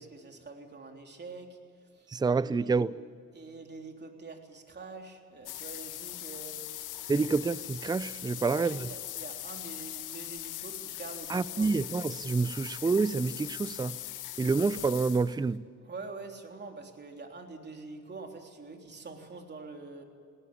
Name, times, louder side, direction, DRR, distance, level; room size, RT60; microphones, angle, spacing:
voice 1, 0.0-1.6 1.9-2.8 3.3-6.6 8.3-11.8 15.8-20.0, right 3 dB, 35° right, 3.6 m, -45 dB
voice 2, 2.1-2.9 7.1-8.8 11.3-13.9 14.4-15.6, right 4 dB, 15° right, 0.5 m, -28 dB
sound 1, 5.5-15.5, left 13 dB, 90° left, 1.4 m, -41 dB
19.5 x 18.5 x 8.6 m
cardioid pair, 90°, 30 cm